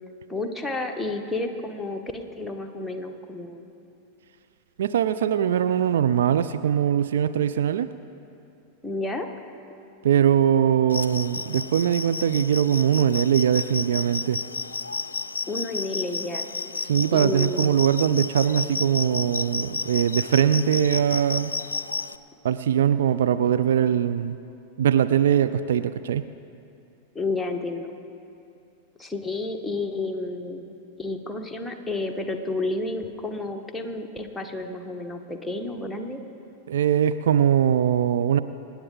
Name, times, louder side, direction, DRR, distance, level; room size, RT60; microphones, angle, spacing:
voice 1, 0.3-3.6 8.8-9.3 15.5-16.5 17.1-17.7 27.1-27.9 29.0-30.6 31.0-36.2, left 2 dB, 5° left, 2 dB, 1.3 m, -31 dB
voice 2, 4.8-7.9 10.0-14.4 16.8-21.5 22.4-24.4 24.8-26.3 36.7-38.4, right 9 dB, 60° right, 11 dB, 0.4 m, -21 dB
sound 1, 10.9-22.2, left 4 dB, 75° left, 0.4 m, -32 dB
25.0 x 10.0 x 3.9 m, 2.7 s
figure-of-eight pair, 90°, 0 cm